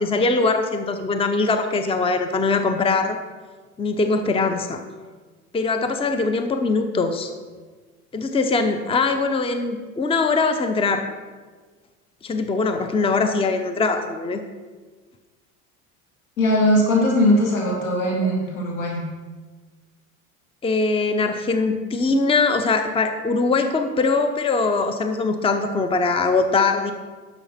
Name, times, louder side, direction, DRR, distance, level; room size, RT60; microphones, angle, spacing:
voice 1, 0.0-3.2 3.8-4.8 5.5-7.3 8.1-11.1 12.2-14.4 18.2-18.3 20.6-26.9, left 3 dB, 15° left, 7 dB, 0.7 m, -22 dB
voice 2, 16.4-19.0, left 1 dB, 80° left, -2 dB, 3.0 m, -20 dB
10.5 x 6.7 x 4.3 m, 1.4 s
hypercardioid pair, 80°, 42 cm